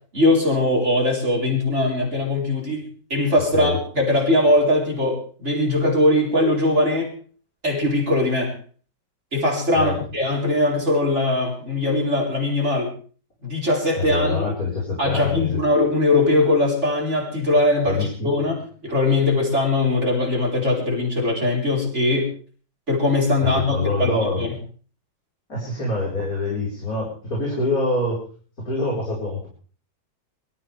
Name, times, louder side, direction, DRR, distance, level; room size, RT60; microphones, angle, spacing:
voice 1, 0.1-2.8 3.1-7.1 7.6-8.6 9.3-12.9 13.4-14.4 15.0-22.3 22.9-24.5, left 2 dB, 35° right, -2 dB, 4.5 m, -21 dB
voice 2, 13.9-15.6 17.8-18.3 23.4-24.4 25.5-28.2 28.6-29.5, left 2 dB, 45° left, -5 dB, 5.4 m, -25 dB
23.5 x 14.0 x 3.5 m, 0.40 s
omnidirectional pair, 2.1 m